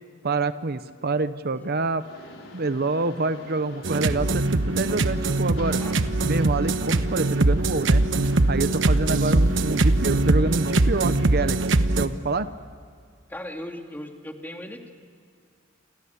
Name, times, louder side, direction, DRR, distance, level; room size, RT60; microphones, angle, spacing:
voice 1, 0.2-2.0 2.5-5.8 6.3-8.1 8.5-11.6 11.9-12.5, right 3 dB, 55° right, 12 dB, 0.8 m, -26 dB
Mechanisms, 2.0-11.5, left 1 dB, 80° left, 5.2 m, -45 dB
sound 1, 3.8-12.1, right 2 dB, 75° right, 1.1 m, -22 dB
voice 2, 13.3-14.9, left 1 dB, 10° left, 3 dB, 2.6 m, -37 dB
29.5 x 27.5 x 7.1 m, 2.2 s
head